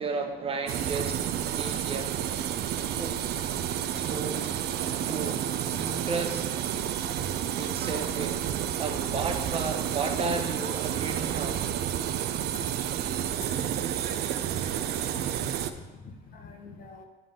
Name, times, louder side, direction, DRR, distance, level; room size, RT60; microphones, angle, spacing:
voice 1, 0.0-2.1 2.9-3.3 3.9-5.4 5.7-6.5 7.6-8.4 8.8-11.6, right 4 dB, 35° right, 4 dB, 1.1 m, -34 dB
sound 1, 0.7-15.7, right 10 dB, 70° right, 0.5 m, -30 dB
voice 2, 5.2-5.8 12.2-12.4 13.6-13.7 15.0-17.0, left 4 dB, 60° left, 4 dB, 1.2 m, -47 dB
8.8 x 3.8 x 7.0 m, 1.2 s
cardioid pair, 110°, 17 cm